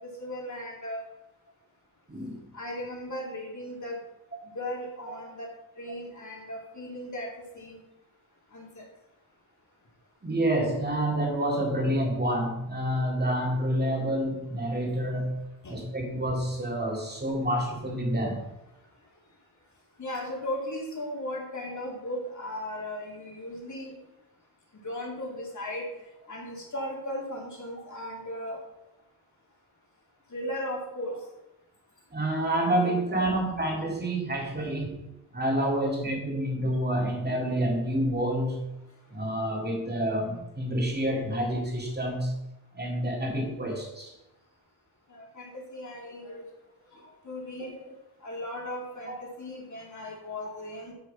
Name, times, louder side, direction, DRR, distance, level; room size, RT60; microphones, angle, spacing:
voice 1, 0.0-1.0 2.5-4.0 4.5-5.5 5.8-7.8 8.5-8.9 15.6-15.7 20.0-23.9 24.8-25.9 26.3-28.6 30.3-31.1 32.9-33.4 34.6-34.7 45.1-46.4 46.9-47.8 48.2-50.9, left 1 dB, 45° left, -2 dB, 2.7 m, -37 dB
voice 2, 2.1-2.4 4.3-4.4 10.2-18.4 32.1-34.9 35.3-38.7 39.1-42.4 42.7-44.1 49.1-49.2, right 1 dB, 25° right, 0 dB, 2.3 m, -28 dB
8.6 x 6.4 x 5.6 m, 0.93 s
wide cardioid pair, 155°, 40 cm